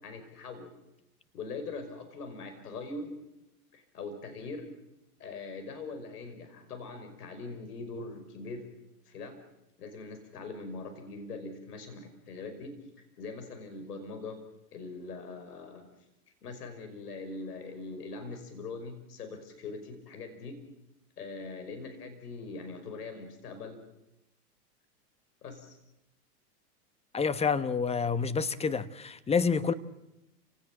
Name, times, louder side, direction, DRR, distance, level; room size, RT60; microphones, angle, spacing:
voice 1, 0.0-0.7 1.3-3.1 3.7-4.7 5.2-8.7 9.1-9.4 9.8-12.7 13.2-14.4 14.7-15.9 16.4-20.6 21.2-23.8 25.4-25.8, left 3 dB, 80° left, 7 dB, 5.5 m, -42 dB
voice 2, 27.1-29.7, left 5 dB, 15° left, 13 dB, 1.1 m, -28 dB
29.5 x 18.0 x 7.5 m, 0.92 s
hypercardioid pair, 115°, 46 cm